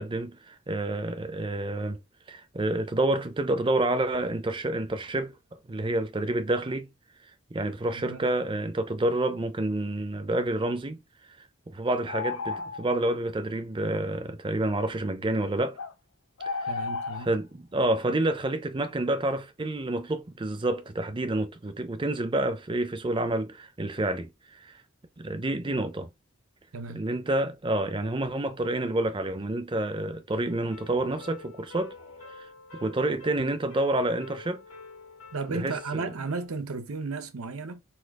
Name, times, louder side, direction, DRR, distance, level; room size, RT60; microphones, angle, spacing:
voice 1, 0.0-2.0 2.3-6.9 7.5-11.0 11.3-15.8 16.5-16.8 17.2-24.8 25.2-26.1 26.9-32.0 32.4-34.6 35.5-36.1, right 1 dB, 20° right, 0.5 m, -29 dB
voice 2, 7.9-8.3 16.7-17.3 26.7-27.0 35.3-37.8, right 4 dB, 80° right, 0.7 m, -34 dB
sound 1, 12.1-13.0 15.8-15.9 16.4-17.3, left 4 dB, 65° left, 0.5 m, -33 dB
sound 2, 30.4-36.5, left 3 dB, 80° left, 1.8 m, -48 dB
4.3 x 2.4 x 4.6 m
head